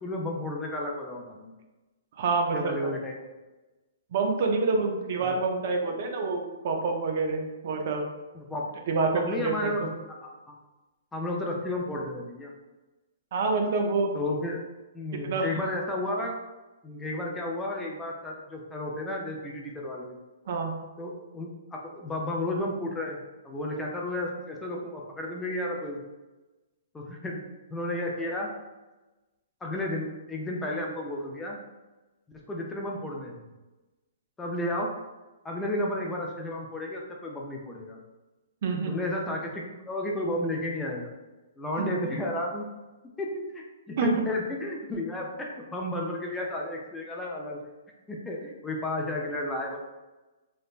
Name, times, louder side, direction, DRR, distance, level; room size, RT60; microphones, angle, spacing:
voice 1, 0.0-1.5 2.5-3.2 5.2-5.4 8.3-8.6 9.0-9.9 10.2-10.6 11.1-12.5 14.1-14.6 14.9-16.3 16.8-20.2 21.0-23.2 23.4-26.0 26.9-27.4 27.7-28.5 29.6-31.6 32.5-33.5 34.4-34.9 35.4-38.0 38.9-41.1 41.6-42.7 43.2-47.6 48.1-49.8, left 1 dB, 10° left, -1 dB, 0.4 m, -32 dB
voice 2, 2.2-2.9 4.1-8.1 8.9-9.9 13.3-14.1 15.2-15.5 20.5-20.8 38.6-39.0 44.0-44.1, right 3 dB, 55° right, 3 dB, 0.4 m, -27 dB
3.2 x 2.0 x 2.4 m, 1.1 s
hypercardioid pair, 135°, 0 cm